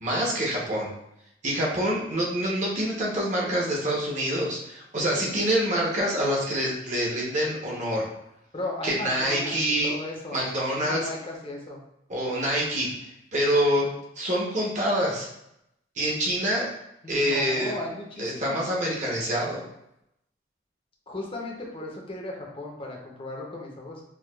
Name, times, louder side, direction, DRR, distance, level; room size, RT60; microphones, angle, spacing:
voice 1, 0.0-0.9 1.4-8.1 8.8-9.9 10.3-11.1 12.1-12.9 13.3-13.9 14.2-15.3 16.0-16.7 17.1-17.7 18.2-19.6, equal, 40° right, -3 dB, 0.8 m, -26 dB
voice 2, 8.5-11.8 17.0-18.7 21.1-24.1, left 2 dB, 30° left, -1 dB, 0.6 m, -36 dB
4.6 x 2.2 x 2.2 m, 0.81 s
head